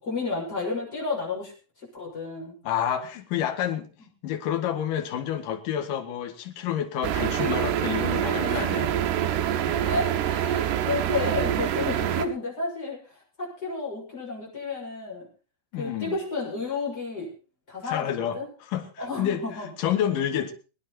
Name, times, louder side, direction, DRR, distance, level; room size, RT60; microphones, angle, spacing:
voice 1, 0.0-1.5 1.8-2.5 8.4-8.8 9.8-15.3 15.8-17.3 17.7-18.5 19.0-19.7, left 3 dB, 20° left, -3 dB, 6.8 m, -32 dB
voice 2, 2.6-3.9 4.2-8.9 9.6-9.8 15.7-16.2 17.8-19.4 19.8-20.5, left 10 dB, 60° left, 5 dB, 2.4 m, -29 dB
sound 1, 7.0-12.3, right 10 dB, 75° right, 2.6 m, -26 dB
22.0 x 9.9 x 4.3 m, 0.34 s
omnidirectional pair, 6.0 m